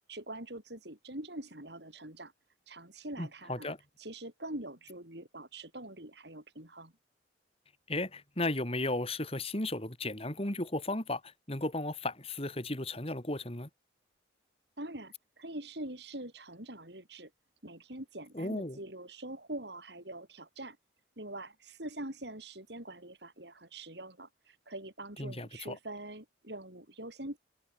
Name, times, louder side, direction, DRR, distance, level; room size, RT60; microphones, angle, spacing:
voice 1, 0.1-2.3 2.7-3.7 4.0-6.9 14.8-17.3 17.6-20.8 21.2-27.4, right 1 dB, 60° right, 6.5 m, -44 dB
voice 2, 3.2-3.8 7.9-13.7 18.3-18.8 25.2-25.8, left 2 dB, 30° left, 3.0 m, -35 dB
head